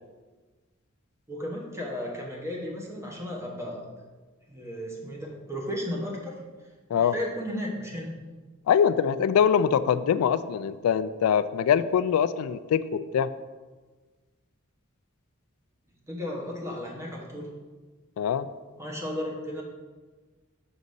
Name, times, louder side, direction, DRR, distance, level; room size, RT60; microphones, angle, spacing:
voice 1, 1.3-3.8 4.5-6.4 6.9-8.1 16.1-17.5 18.8-19.6, equal, 15° right, -1 dB, 1.1 m, -34 dB
voice 2, 8.7-13.3 18.2-18.5, left 8 dB, 90° left, 16 dB, 0.3 m, -23 dB
6.3 x 4.0 x 5.3 m, 1.3 s
head